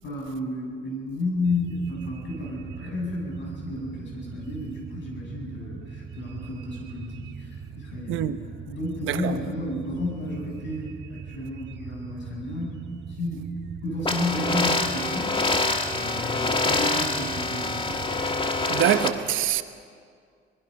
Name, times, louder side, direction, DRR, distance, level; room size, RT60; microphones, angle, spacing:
voice 1, 0.0-8.3 8.7-12.8 13.2-13.5 13.8-15.4 15.9-18.0, left 1 dB, 70° left, 7.7 m, -32 dB
sound 1, 1.4-18.8, right 6 dB, 60° right, 1.6 m, -41 dB
sound 2, 14.1-19.1, left 3 dB, 25° left, 1.5 m, -26 dB
voice 2, 18.7-19.6, right 11 dB, 85° right, 1.0 m, -24 dB
24.5 x 20.0 x 5.5 m
cardioid pair, 90°, 20 cm